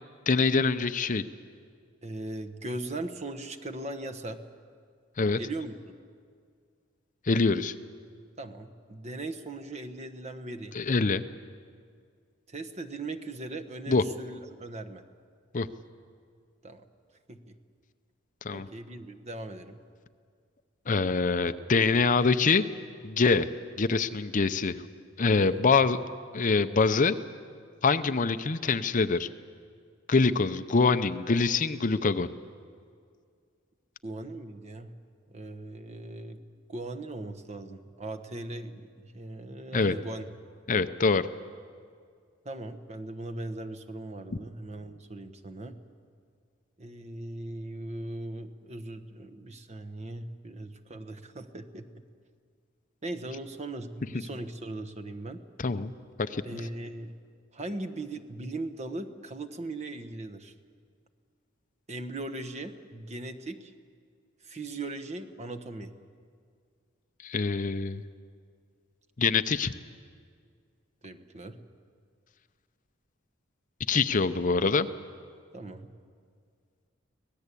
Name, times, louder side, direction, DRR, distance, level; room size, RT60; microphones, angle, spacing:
voice 1, 0.3-1.2 5.2-5.4 7.3-7.7 10.7-11.2 13.9-14.0 15.5-15.7 18.4-18.7 20.9-22.6 23.0-23.5 23.8-24.8 25.2-26.0 26.3-27.2 27.8-29.3 30.1-32.3 39.7-39.9 40.7-41.3 55.6-55.9 56.2-56.6 67.2-68.0 69.2-69.7 73.9-74.9, left 4 dB, 40° left, 11 dB, 0.6 m, -24 dB
voice 2, 2.0-4.4 5.4-5.9 8.4-10.7 12.5-15.0 16.6-16.9 17.3-17.6 18.5-19.8 25.4-25.6 34.0-34.9 35.3-36.4 36.7-40.3 42.4-45.7 46.8-52.0 53.0-55.4 56.4-57.1 57.5-60.5 61.9-63.7 64.4-65.9 71.0-71.6 75.5-75.9, right 2 dB, 35° right, 6 dB, 1.2 m, -39 dB
25.0 x 18.5 x 8.4 m, 2.1 s
head